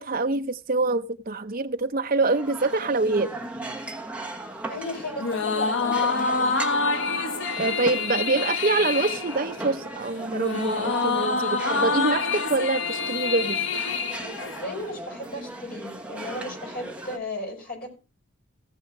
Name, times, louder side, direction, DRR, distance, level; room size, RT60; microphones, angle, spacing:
voice 1, 0.0-3.3 7.6-13.6, right 3 dB, 40° right, 0.7 m, -25 dB
sound 1, 2.2-17.2, right 2 dB, 5° right, 1.2 m, -38 dB
voice 2, 4.7-6.5 14.4-18.0, left 1 dB, 45° left, 6.0 m, -35 dB
sound 2, 5.2-14.9, left 4 dB, 65° left, 1.2 m, -27 dB
17.0 x 6.4 x 4.8 m
head